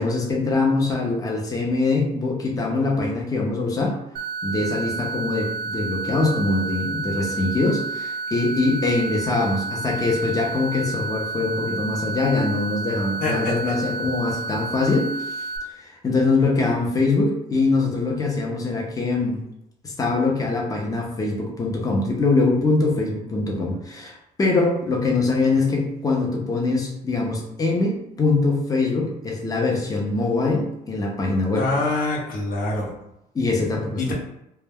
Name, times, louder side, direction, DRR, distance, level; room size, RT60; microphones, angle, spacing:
voice 1, 0.0-4.0 4.4-15.5 15.8-19.4 19.8-31.7 33.3-34.1, left 3 dB, 20° left, -1 dB, 0.6 m, -23 dB
sound 1, 4.2-15.6, right 3 dB, 60° right, 0.5 m, -30 dB
voice 2, 13.2-13.5 31.5-33.0 34.0-34.1, left 2 dB, 55° left, -2 dB, 0.8 m, -25 dB
2.2 x 2.1 x 3.4 m, 0.84 s
cardioid pair, 110°, 17 cm